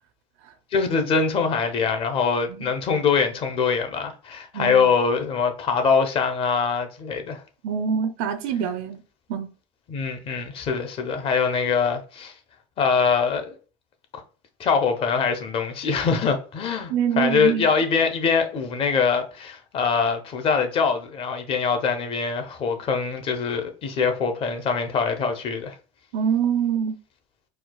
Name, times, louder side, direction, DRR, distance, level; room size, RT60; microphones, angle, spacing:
voice 1, 0.7-7.4 9.9-12.3 12.8-13.6 14.6-25.7, left 5 dB, 35° left, 0.7 m, -23 dB
voice 2, 4.5-4.9 7.6-9.0 9.3-9.5 16.9-17.6 26.1-27.0, right 7 dB, 65° right, 0.5 m, -25 dB
4.5 x 2.3 x 2.2 m
supercardioid pair, 145°, 17 cm